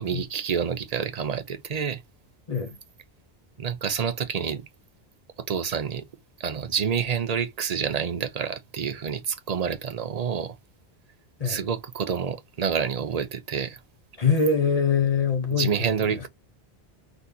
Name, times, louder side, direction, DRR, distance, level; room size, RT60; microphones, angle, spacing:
voice 1, 0.0-2.0 3.6-4.6 5.5-6.0 6.4-10.5 11.4-13.8 15.5-16.3, right 7 dB, 45° right, 0.7 m, -28 dB
voice 2, 14.2-16.3, left 5 dB, 40° left, 1.0 m, -24 dB
4.0 x 3.4 x 2.7 m
omnidirectional pair, 1.1 m